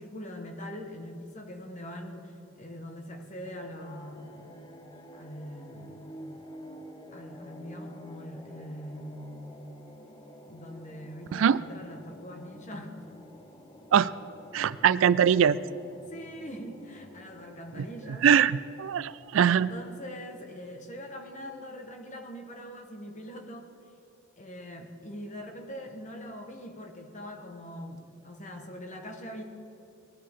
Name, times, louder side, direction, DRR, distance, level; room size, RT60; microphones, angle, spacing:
voice 1, 0.0-4.5 5.1-6.2 7.1-9.3 10.5-13.1 16.1-18.3 19.4-23.8 24.4-29.4, equal, 40° left, 3 dB, 1.4 m, -42 dB
sound 1, 3.5-20.0, equal, 25° left, 0.9 m, -50 dB
voice 2, 14.5-15.6 17.8-17.9 18.2-19.7, right 8 dB, 70° right, 17 dB, 0.3 m, -22 dB
18.5 x 11.0 x 3.7 m, 2.8 s
head